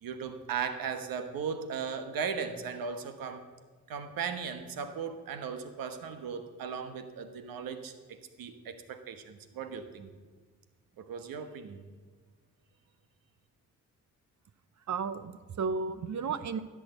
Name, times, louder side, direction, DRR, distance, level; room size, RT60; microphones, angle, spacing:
voice 1, 0.0-3.4 3.9-10.1 11.0-11.8, right 6 dB, 80° right, 9 dB, 1.2 m, -37 dB
voice 2, 14.9-16.6, right 5 dB, 55° right, 13 dB, 0.8 m, -33 dB
15.0 x 6.3 x 7.9 m, 1.4 s
cardioid pair, 65°, 34 cm